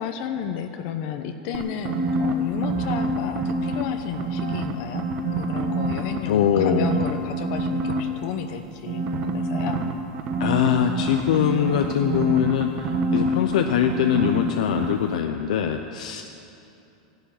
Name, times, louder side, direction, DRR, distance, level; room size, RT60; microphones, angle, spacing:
voice 1, 0.0-9.8, left 8 dB, 50° left, 7 dB, 0.8 m, -32 dB
sound 1, 1.5-3.8 4.1-6.2 6.5-8.0 8.9-14.5 14.8-14.9, right 2 dB, 35° right, 1.3 m, -26 dB
sound 2, 2.7-5.2, left 1 dB, 15° left, 1.1 m, -47 dB
voice 2, 6.3-6.9 10.4-16.2, left 9 dB, 80° left, 5 dB, 0.7 m, -23 dB
12.0 x 11.5 x 9.0 m, 2.8 s
supercardioid pair, 150°, 4 cm